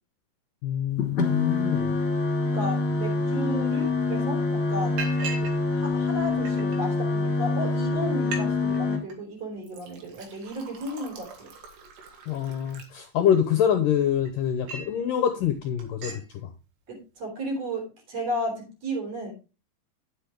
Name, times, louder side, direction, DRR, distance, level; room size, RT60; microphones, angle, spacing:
voice 1, 0.6-2.0 12.3-16.2, left 9 dB, 70° left, 7 dB, 2.1 m, -25 dB
sound 1, 1.0-9.0, left 3 dB, 25° left, 2.0 m, -26 dB
voice 2, 2.4-5.1 5.7-11.5 16.9-19.3, equal, 40° right, 1 dB, 4.1 m, -33 dB
Liquid, 3.8-3.9 4.2-4.5 5.0-5.6 5.9-6.8 7.4-7.5 7.8-7.9 8.2-8.5 8.7-9.2 9.6-13.5 14.0-15.0 15.4-15.5 15.8-16.3, right 3 dB, 80° right, 4.2 m, -40 dB
9.9 x 7.4 x 3.4 m, 0.31 s
omnidirectional pair, 4.8 m